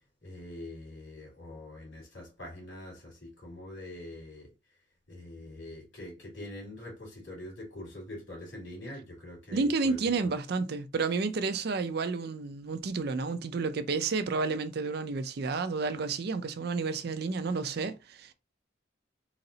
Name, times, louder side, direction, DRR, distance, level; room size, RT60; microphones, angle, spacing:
voice 1, 0.2-4.5 5.1-10.0 10.2-10.3, left 1 dB, 85° left, 2.2 m, -44 dB
voice 2, 9.5-18.3, right 4 dB, 55° right, 0.4 m, -31 dB
4.0 x 2.0 x 3.8 m
head